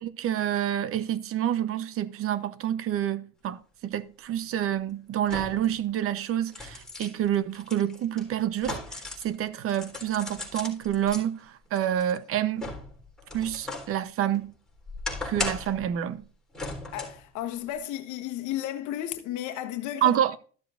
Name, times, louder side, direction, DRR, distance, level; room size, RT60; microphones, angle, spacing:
voice 1, 0.0-12.7 13.3-14.5 15.2-16.2 20.0-20.3, right 11 dB, 40° right, 0.9 m, -28 dB
sound 1, 3.9-4.0 5.2-5.7 6.2-9.3 9.7-11.2 11.8-13.9 14.3-15.8 16.5-17.2 17.7-17.8, left 2 dB, ahead, 3.8 m, -37 dB
voice 2, 16.9-20.4, left 12 dB, 60° left, 1.3 m, -33 dB
13.5 x 7.5 x 2.6 m
supercardioid pair, 100°, 34 cm